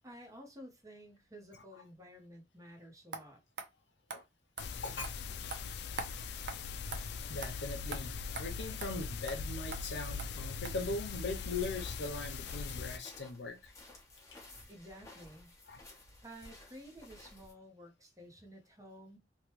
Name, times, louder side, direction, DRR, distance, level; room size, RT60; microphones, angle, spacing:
voice 1, 0.0-3.4 14.7-15.5 16.2-19.2, equal, 20° right, 0.8 m, -52 dB
sound 1, 3.1-3.2 3.6-3.7 4.1-4.2 4.6-4.7 5.0-5.1 5.5-5.6 6.0-6.1 6.5-6.6 6.9-7.0 7.4-7.5 7.9-8.0 8.4-8.5 8.8-8.9 9.3-9.4 9.7-9.8 10.2-10.3 10.6-10.7, right 4 dB, 85° right, 0.6 m, -41 dB
sound 2, 4.6-13.0, left 5 dB, 65° left, 0.3 m, -41 dB
voice 2, 7.3-13.7 15.7-15.8, left 3 dB, 85° left, 0.7 m, -40 dB
sound 3, 11.4-17.5, left 2 dB, 20° left, 1.0 m, -54 dB
3.0 x 2.2 x 3.0 m
head